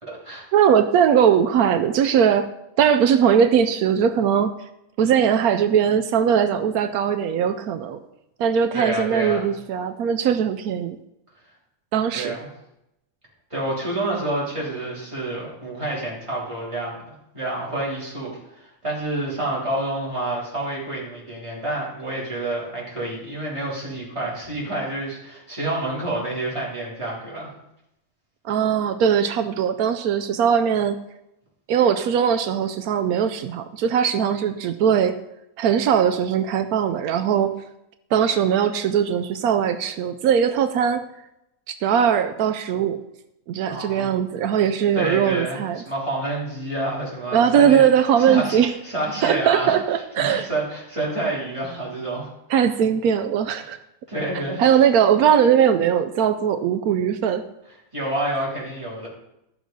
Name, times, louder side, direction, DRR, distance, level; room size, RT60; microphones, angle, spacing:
voice 1, 0.0-0.5 8.7-9.5 12.1-12.5 13.5-17.0 17.3-27.5 43.7-44.1 44.9-47.9 48.2-48.6 48.8-52.3 53.6-53.7 54.1-54.8 57.9-59.1, right 1 dB, 20° right, -6 dB, 3.6 m, -28 dB
voice 2, 0.5-2.5 2.8-4.5 5.0-8.0 8.4-11.0 11.9-12.4 28.4-31.0 31.7-35.2 35.6-37.5 38.1-41.0 41.7-43.0 43.5-45.8 47.3-48.7 49.2-50.5 52.5-53.8 54.6-57.4, right 8 dB, 85° right, 9 dB, 1.1 m, -20 dB
13.0 x 6.3 x 5.3 m, 0.85 s
omnidirectional pair, 1.5 m